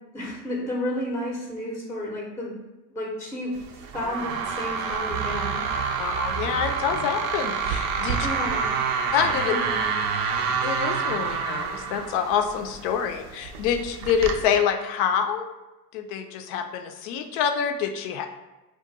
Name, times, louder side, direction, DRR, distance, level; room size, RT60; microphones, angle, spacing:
voice 1, 0.1-2.5 2.9-5.6 8.2-8.7 9.5-9.9, left 1 dB, 5° left, -3 dB, 0.6 m, -32 dB
sound 1, 3.5-14.6, right 6 dB, 70° right, 0.6 m, -28 dB
voice 2, 6.0-8.3 9.1-9.5 10.6-15.5 15.9-18.3, left 7 dB, 55° left, 7 dB, 0.5 m, -26 dB
2.4 x 2.2 x 3.9 m, 1.1 s
hypercardioid pair, 80°, 47 cm